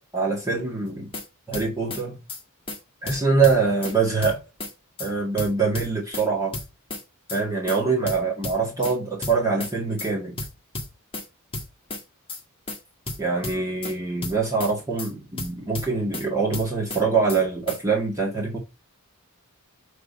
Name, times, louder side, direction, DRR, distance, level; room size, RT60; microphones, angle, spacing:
voice 1, 0.1-1.1 1.5-2.2 3.0-4.4 5.0-6.6 7.3-10.4 13.2-18.6, right 4 dB, 15° right, 1.8 m, -24 dB
sound 1, 0.9-1.3 1.5-2.0 2.3-2.4 2.7-2.8 3.1-4.0 4.2-4.7 5.0-5.1 5.4-6.3 6.5-7.0 7.3-7.4 7.7-7.8 8.1-8.9 9.2-9.7 10.0-10.1 10.4-11.3 11.5-12.0 12.3-12.4 12.7-12.8 13.1-13.9 14.2-14.7 15.0-15.1 15.4-16.3 16.5-17.0 17.3-17.4 17.7-17.8, left 2 dB, 25° left, 1.6 m, -33 dB
6.2 x 3.4 x 5.4 m
head